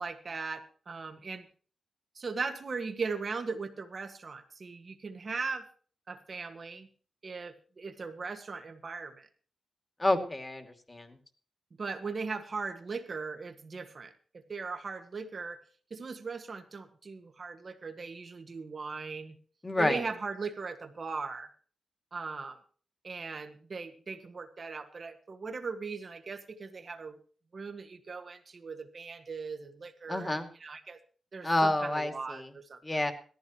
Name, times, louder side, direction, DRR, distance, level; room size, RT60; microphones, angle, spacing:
voice 1, 0.0-1.5 2.1-5.7 6.1-6.9 7.2-9.3 11.8-14.1 14.5-15.6 15.9-19.3 19.8-21.5 22.1-22.6 23.0-27.2 27.5-31.0 31.3-33.0, right 4 dB, 50° right, 6 dB, 1.7 m, -39 dB
voice 2, 10.0-11.2 19.6-20.0 30.1-30.5 31.4-32.5 32.8-33.1, left 1 dB, 20° left, 6 dB, 2.4 m, -29 dB
17.5 x 14.5 x 3.0 m, 0.42 s
cardioid pair, 80°, 0 cm